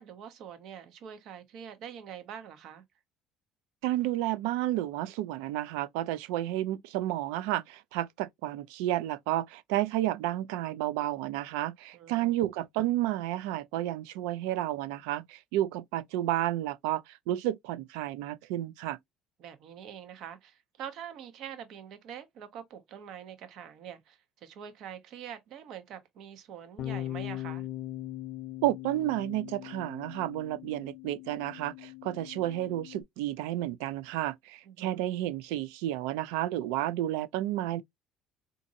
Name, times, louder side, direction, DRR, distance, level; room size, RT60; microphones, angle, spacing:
voice 1, 0.0-2.8 11.9-12.4 19.4-27.7 34.6-35.0, right 9 dB, 65° right, 0.8 m, -45 dB
voice 2, 3.8-19.0 28.6-37.8, right 14 dB, 90° right, 0.3 m, -31 dB
Bass guitar, 26.8-33.0, left 14 dB, 60° left, 0.4 m, -40 dB
3.9 x 2.5 x 2.6 m
cardioid pair, 110°, 0 cm